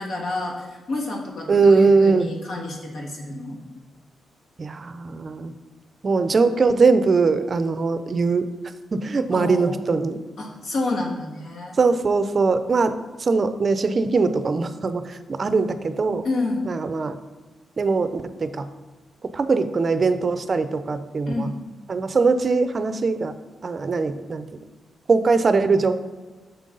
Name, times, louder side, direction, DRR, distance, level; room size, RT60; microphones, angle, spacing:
voice 1, 0.0-3.6 9.3-10.0 10.4-11.8 16.2-16.7 21.3-21.6, left 2 dB, 75° left, 0 dB, 1.4 m, -29 dB
voice 2, 1.5-2.3 4.6-5.5 6.0-8.4 8.9-10.2 11.8-12.9 13.2-16.2 16.6-17.1 17.8-18.7 19.3-21.5 21.9-23.3 23.6-24.5 25.1-26.0, right 4 dB, 45° right, 10 dB, 0.4 m, -21 dB
6.9 x 5.3 x 3.8 m, 1.3 s
cardioid pair, 85°, 0 cm